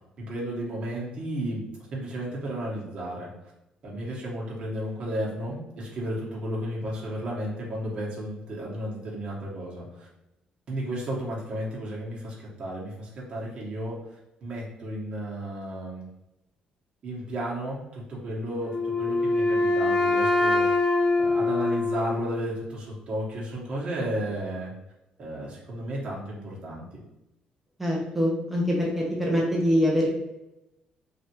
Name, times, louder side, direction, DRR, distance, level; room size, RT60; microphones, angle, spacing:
voice 1, 0.2-1.6 1.9-3.3 3.8-10.1 10.7-14.0 14.4-16.0 17.0-20.8 21.2-24.7 25.2-26.9, right 1 dB, 40° right, -5 dB, 1.0 m, -33 dB
Wind instrument woodwind instrument, 18.7-22.6, left 2 dB, 20° left, 1.0 m, -24 dB
voice 2, 27.8-30.1, equal, 5° right, -3 dB, 0.6 m, -24 dB
3.3 x 2.5 x 2.8 m, 0.93 s
cardioid pair, 155°, 3 cm